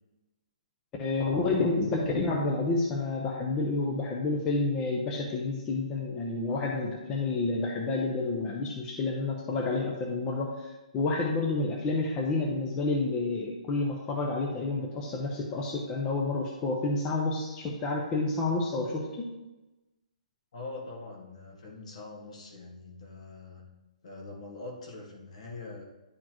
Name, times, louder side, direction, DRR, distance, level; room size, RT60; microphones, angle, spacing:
voice 1, 1.0-19.3, left 3 dB, 15° left, -1 dB, 0.6 m, -29 dB
voice 2, 20.5-23.6 24.0-25.9, left 3 dB, 55° left, 0 dB, 1.7 m, -43 dB
10.5 x 4.2 x 3.0 m, 1.1 s
hypercardioid pair, 170°, 4 cm